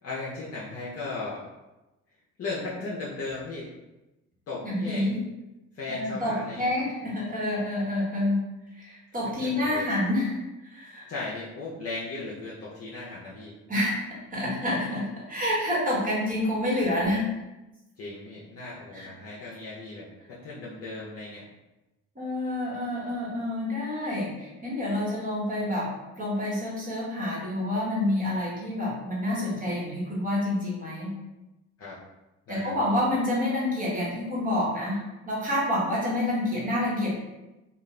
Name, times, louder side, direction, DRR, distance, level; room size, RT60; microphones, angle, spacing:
voice 1, 0.0-1.4 2.4-3.7 4.5-5.1 5.7-6.7 9.4-9.9 11.1-13.5 18.0-21.5 31.8-32.0 32.5-33.0, left 3 dB, 55° left, -6 dB, 0.7 m, -37 dB
voice 2, 4.6-5.2 5.9-8.5 8.7-10.3 10.6-11.1 13.7-14.0 14.3-17.3 18.9-19.1 22.1-25.9 26.2-31.1 32.5-37.2, left 1 dB, 30° right, -6 dB, 1.4 m, -28 dB
2.4 x 2.3 x 3.1 m, 1.0 s
cardioid pair, 90°, 30 cm